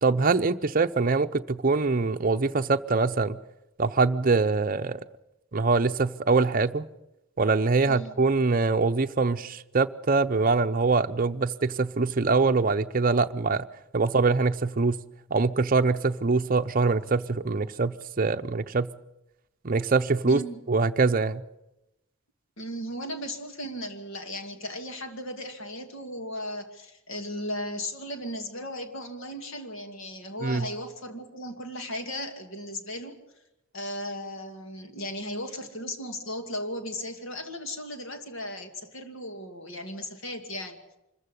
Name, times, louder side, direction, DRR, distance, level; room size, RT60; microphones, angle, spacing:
voice 1, 0.0-3.4 3.8-5.1 5.5-6.9 7.4-13.7 13.9-15.0 15.3-18.9 19.6-20.4 20.7-21.4 30.4-30.6, right 4 dB, 40° right, 0.7 m, -24 dB
voice 2, 7.8-8.1 20.3-20.6 22.6-33.2 33.7-40.8, equal, 65° left, 2.5 m, -36 dB
25.5 x 14.5 x 8.3 m
head